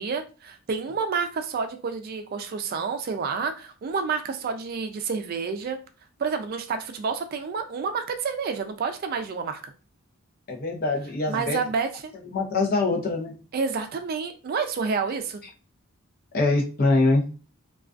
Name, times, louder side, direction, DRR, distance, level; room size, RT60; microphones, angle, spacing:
voice 1, 0.0-5.8 6.2-9.6 11.3-12.1 13.5-15.4, right 5 dB, 45° right, 7 dB, 0.3 m, -29 dB
voice 2, 10.5-11.6 12.3-13.4 16.3-17.3, left 2 dB, 45° left, 0 dB, 0.6 m, -23 dB
2.3 x 2.3 x 2.4 m, 0.35 s
head